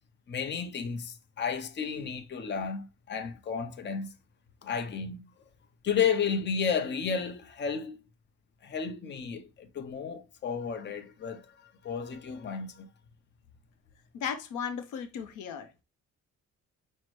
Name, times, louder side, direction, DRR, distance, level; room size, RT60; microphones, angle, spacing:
voice 1, 0.3-4.1 4.6-5.2 5.8-8.0 8.6-12.9, left 6 dB, 35° left, 0.6 m, -32 dB
voice 2, 14.1-15.8, left 7 dB, 85° left, 0.7 m, -36 dB
5.7 x 2.1 x 3.0 m
cardioid pair, 90°, 30 cm